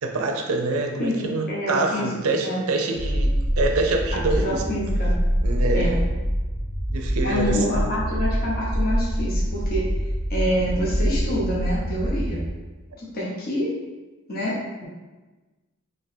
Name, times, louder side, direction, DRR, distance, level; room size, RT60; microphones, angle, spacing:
voice 1, 0.0-4.6 5.4-5.9 6.9-7.8, right 3 dB, 75° right, 3 dB, 0.5 m, -25 dB
voice 2, 1.0-2.6 4.3-5.1 5.7-6.0 7.2-9.9 10.3-12.4 13.0-13.7 14.3-14.8, equal, 45° left, -6 dB, 0.7 m, -27 dB
sound 1, 2.9-12.5, equal, 10° left, 0.7 m, -25 dB
3.4 x 2.9 x 2.7 m, 1.2 s
head